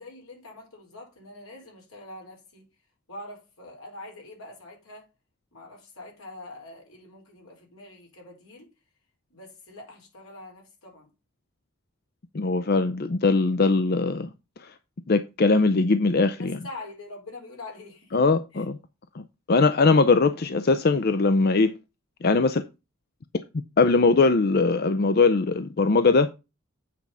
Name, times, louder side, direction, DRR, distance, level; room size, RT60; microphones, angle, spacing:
voice 1, 0.0-2.7 3.1-5.1 5.5-8.7 9.3-11.1 16.4-18.2 18.5-18.7, left 2 dB, 80° left, 4.1 m, -44 dB
voice 2, 12.3-14.3 14.6-14.7 15.1-16.6 18.1-18.7 19.1-19.2 19.5-21.7 22.2-22.6 23.8-26.3, left 3 dB, 45° left, 0.5 m, -21 dB
8.4 x 4.7 x 5.4 m
head